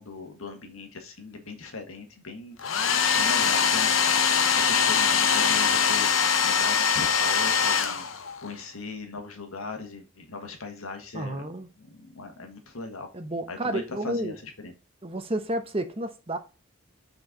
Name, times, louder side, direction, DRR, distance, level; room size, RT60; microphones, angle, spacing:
voice 1, 0.0-8.0 8.4-13.1 13.5-14.7, left 3 dB, 85° left, 1.7 m, -39 dB
Domestic sounds home sounds, 2.6-8.5, left 6 dB, 70° left, 0.8 m, -23 dB
voice 2, 11.1-11.7 13.1-14.4 15.0-16.4, right 1 dB, 25° right, 0.8 m, -31 dB
6.3 x 4.6 x 5.2 m
head